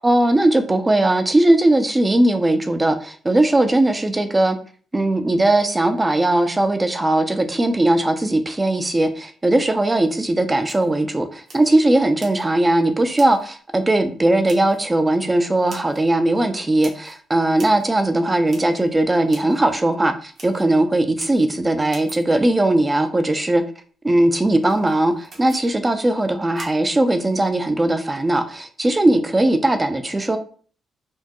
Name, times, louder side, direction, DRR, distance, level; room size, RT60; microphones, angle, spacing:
voice 1, 0.0-4.6 4.9-23.6 24.0-30.4, right 1 dB, 20° right, 8 dB, 0.4 m, -19 dB
sound 1, 10.0-10.1 10.6-10.9 11.4-11.8 12.2-12.5 13.1-13.5 14.4-14.8 15.7-16.1 16.8-17.2 17.6-17.9 18.5-18.9 19.3-19.6 20.0-20.1 20.3-20.6 21.2-21.5 21.9-23.2 24.6-25.7 26.6-26.7, right 3 dB, 50° right, 1.0 m, -44 dB
4.3 x 2.2 x 2.9 m, 0.44 s
cardioid pair, 100°, 0 cm